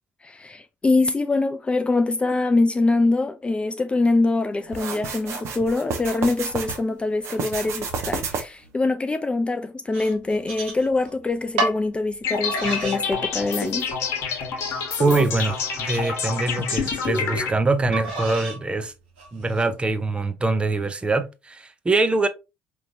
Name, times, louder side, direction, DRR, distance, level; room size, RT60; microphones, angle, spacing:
voice 1, 0.2-13.9, left 3 dB, 20° left, 0.4 m, -24 dB
sound 1, 4.7-6.8 7.2-8.7, right 5 dB, 50° right, 1.0 m, -30 dB
sound 2, 9.9-11.1 11.6-11.8 12.4-13.0 13.4-13.9 14.4-14.5 15.2-16.7 17.9-18.6 19.2-19.7, right 2 dB, 75° right, 1.4 m, -31 dB
sound 3, 12.2-17.5, left 5 dB, 50° left, 1.3 m, -27 dB
voice 2, 15.0-18.9 19.3-22.3, right 3 dB, 15° right, 0.7 m, -23 dB
5.0 x 3.1 x 2.8 m
figure-of-eight pair, 55°, 6 cm